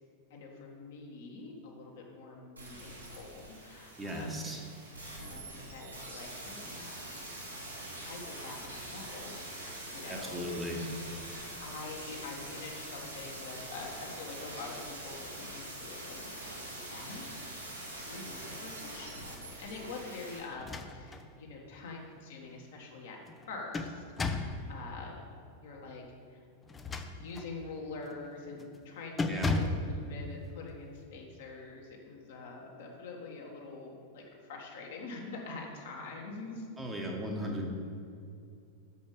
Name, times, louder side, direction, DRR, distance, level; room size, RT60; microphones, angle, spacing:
voice 1, 0.3-4.5 5.1-7.0 8.0-10.5 11.6-23.2 23.5-25.2 25.6-26.5 27.1-36.7, left 3 dB, 55° left, -1 dB, 1.5 m, -45 dB
sound 1, 2.6-20.4 20.7-20.8, right 1 dB, 85° right, 1.9 m, -44 dB
voice 2, 4.0-4.6 10.1-10.8 29.3-29.5 36.8-37.7, equal, 10° right, 0 dB, 1.2 m, -37 dB
sound 2, 20.5-21.3 21.7-21.8 23.3-24.6 26.6-27.5 28.0-28.3 28.6-28.8 29.2-29.9, left 3 dB, 15° left, 0.5 m, -34 dB
6.4 x 5.6 x 6.6 m, 2.4 s
figure-of-eight pair, 90°, 0 cm